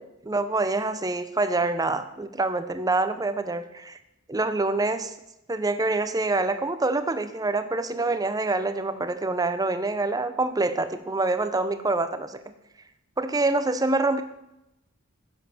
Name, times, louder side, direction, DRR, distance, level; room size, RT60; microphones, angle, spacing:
voice 1, 0.2-4.0 4.3-5.1 5.5-12.4 13.2-14.2, right 2 dB, 15° right, 11 dB, 0.6 m, -26 dB
10.0 x 7.2 x 6.7 m, 0.88 s
head